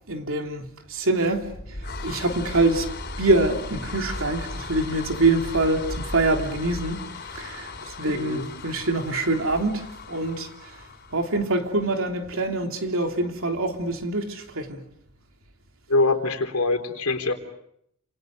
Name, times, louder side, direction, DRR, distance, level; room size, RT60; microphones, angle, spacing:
voice 1, 0.1-2.9 3.2-7.0 7.3-14.8, right 2 dB, 65° right, 3.4 m, -25 dB
sound 1, 1.3-11.8, left 2 dB, 50° left, 4.2 m, -36 dB
voice 2, 8.0-8.5 15.9-17.3, left 2 dB, 80° left, 3.7 m, -24 dB
29.5 x 27.5 x 6.7 m
head